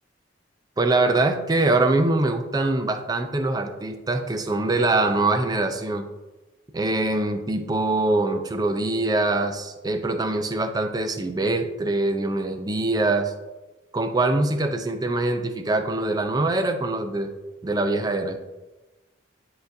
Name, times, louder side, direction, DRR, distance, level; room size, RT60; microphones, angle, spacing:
voice 1, 0.8-6.1 6.7-13.3 13.9-17.3 17.6-18.4, right 2 dB, 20° right, 6 dB, 0.4 m, -23 dB
10.5 x 3.9 x 2.6 m, 1.1 s
head